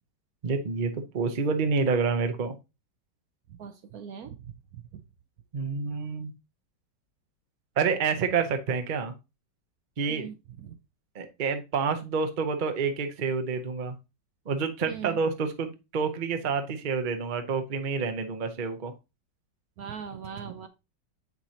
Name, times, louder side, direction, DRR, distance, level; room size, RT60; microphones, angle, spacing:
voice 1, 0.4-2.5 5.5-6.3 7.8-9.1 10.0-10.3 11.1-13.9 14.5-18.9, right 5 dB, 40° right, 7 dB, 0.7 m, -28 dB
voice 2, 3.5-5.0 10.1-10.8 14.9-15.2 19.8-20.7, right 7 dB, 65° right, 9 dB, 1.0 m, -41 dB
7.6 x 5.9 x 2.8 m, 0.26 s
omnidirectional pair, 1.9 m